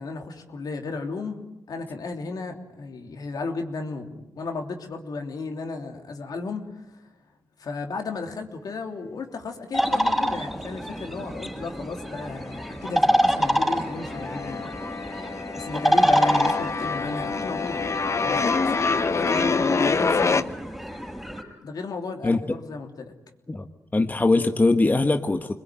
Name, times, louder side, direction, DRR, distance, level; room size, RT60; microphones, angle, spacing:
voice 1, 0.0-1.4 1.7-7.0 7.6-14.7 15.5-17.8 18.2-18.8 19.0-20.5 21.6-23.1, left 3 dB, 70° left, 4 dB, 3.2 m, -34 dB
sound 1, 9.7-21.4, equal, 5° right, 5.8 m, -27 dB
sound 2, 12.2-13.0 13.3-20.4, left 4 dB, 45° left, 1.1 m, -26 dB
voice 2, 22.2-22.6 23.5-23.7 23.9-25.5, left 2 dB, 25° left, 6 dB, 1.5 m, -21 dB
26.5 x 21.5 x 9.3 m, 0.91 s
cardioid pair, 70°, 7 cm